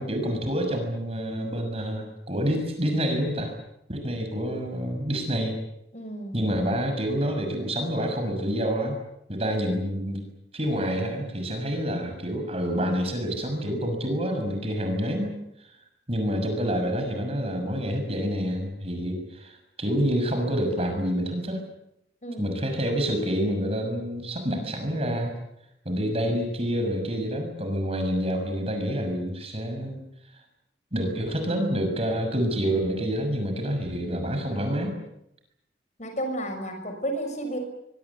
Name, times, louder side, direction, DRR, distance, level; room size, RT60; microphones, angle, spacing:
voice 1, 0.0-3.5 3.9-5.5 6.3-9.0 9.3-10.2 10.5-15.3 15.6-15.7 16.1-21.6 22.4-25.3 25.8-30.0 30.9-34.9, equal, 35° right, 5 dB, 6.4 m, -27 dB
voice 2, 5.9-6.4 22.2-22.6 36.0-37.6, right 1 dB, 40° left, 6 dB, 6.4 m, -32 dB
25.0 x 23.5 x 8.4 m, 0.82 s
head